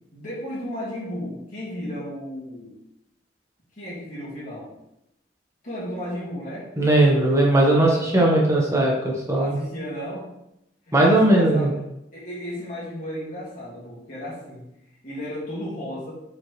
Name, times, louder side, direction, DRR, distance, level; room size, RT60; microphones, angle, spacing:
voice 1, 0.1-2.7 3.8-4.7 5.6-6.7 7.9-8.2 9.3-10.3 10.9-11.8 12.1-14.7 15.0-16.1, equal, 45° left, -8 dB, 2.4 m, -34 dB
voice 2, 6.8-9.6 10.9-11.7, right 1 dB, 15° right, -2 dB, 1.3 m, -18 dB
7.3 x 4.4 x 3.4 m, 0.85 s
head